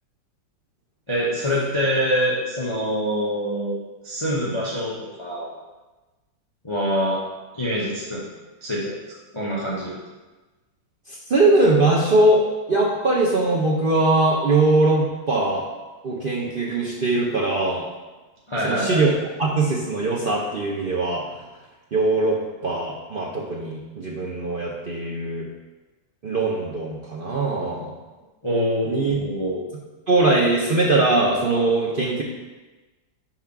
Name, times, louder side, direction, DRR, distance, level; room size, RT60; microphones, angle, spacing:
voice 1, 1.1-3.8 4.0-5.5 6.6-7.2 7.5-8.2 8.6-9.9 18.5-19.0 28.4-29.6, equal, 20° left, -6 dB, 0.8 m, -25 dB
voice 2, 11.1-12.4 12.7-15.7 16.0-17.9 18.6-19.1 19.4-21.2 21.9-22.4 22.6-25.5 26.2-27.9 28.8-29.2 30.1-32.2, right 2 dB, 75° right, -4 dB, 0.5 m, -21 dB
5.9 x 3.6 x 5.8 m, 1.2 s
omnidirectional pair, 2.0 m